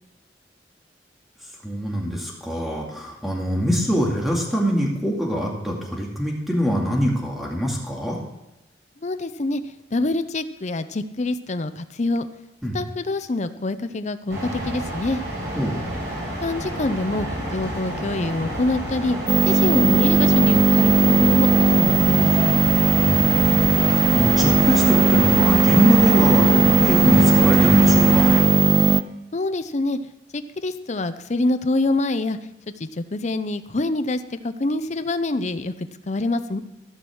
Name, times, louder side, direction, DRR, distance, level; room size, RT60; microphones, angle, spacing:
voice 1, 1.6-8.2 12.6-12.8 15.5-15.8 23.0-28.3, equal, ahead, -2 dB, 2.2 m, -23 dB
voice 2, 9.0-9.6 9.9-12.3 12.7-15.2 16.4-17.3 17.5-19.2 19.4-22.6 29.3-30.0 30.3-32.4 32.8-35.7 36.1-36.6, left 2 dB, 40° left, 11 dB, 0.6 m, -25 dB
sound 1, 14.3-28.4, right 1 dB, 80° right, 4.6 m, -28 dB
sound 2, 19.3-29.0, right 3 dB, 25° right, 0.4 m, -17 dB
15.0 x 6.2 x 6.4 m, 0.92 s
head